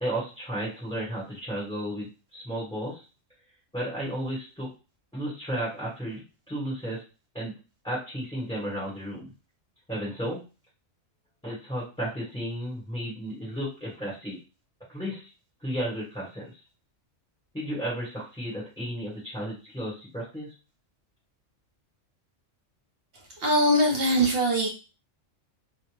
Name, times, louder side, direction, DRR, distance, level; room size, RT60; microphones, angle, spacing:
voice 1, 0.0-3.0 3.7-4.7 5.1-7.0 7.3-7.5 7.8-9.3 9.9-10.4 11.4-14.4 14.9-15.3 15.6-16.5 17.5-20.5, equal, 5° left, -8 dB, 1.0 m, -33 dB
voice 2, 23.4-24.7, equal, 55° right, 0 dB, 1.0 m, -22 dB
2.4 x 2.1 x 3.2 m, 0.32 s
omnidirectional pair, 1.3 m